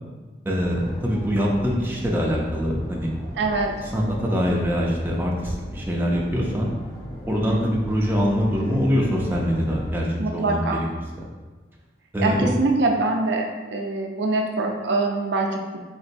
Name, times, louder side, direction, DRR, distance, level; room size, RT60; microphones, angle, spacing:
voice 1, 0.5-3.1 3.9-6.7 7.3-10.9 12.1-12.5, equal, 10° right, -3 dB, 0.4 m, -24 dB
sound 1, 0.6-9.9, equal, 20° left, 0.7 m, -37 dB
voice 2, 3.4-3.7 4.1-4.4 7.3-7.7 10.2-10.9 12.2-15.8, right 3 dB, 70° right, 1 dB, 0.5 m, -24 dB
4.0 x 3.6 x 2.6 m, 1.3 s
head